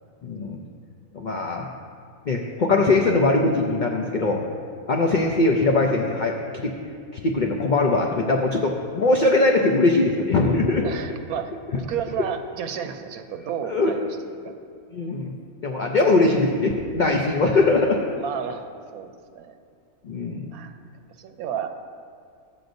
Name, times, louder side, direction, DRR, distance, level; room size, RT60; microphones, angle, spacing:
voice 1, 0.2-0.6 1.1-1.7 2.3-4.4 4.9-6.3 6.6-6.7 7.1-10.9 13.7-13.9 14.9-18.0 20.0-20.5, left 2 dB, 90° left, 1 dB, 0.4 m, -21 dB
voice 2, 10.8-11.5 11.9-14.4 18.2-19.6 20.5-20.8 21.2-21.7, right 8 dB, 80° right, 7 dB, 1.1 m, -32 dB
13.0 x 7.7 x 2.6 m, 2.3 s
omnidirectional pair, 1.6 m